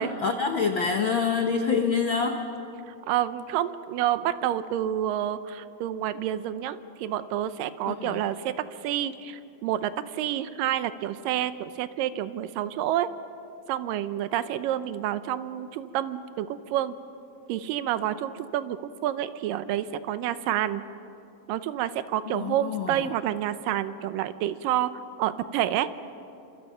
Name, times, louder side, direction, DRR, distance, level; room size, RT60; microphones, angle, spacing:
voice 1, 0.0-2.5 7.9-8.2 22.3-23.1, left 5 dB, 85° left, 5 dB, 1.0 m, -26 dB
voice 2, 2.9-8.5 8.8-13.1 13.7-17.0 17.5-20.8 21.5-25.9, right 11 dB, 85° right, 13 dB, 2.5 m, -29 dB
29.0 x 26.0 x 5.7 m, 2.8 s
omnidirectional pair, 3.8 m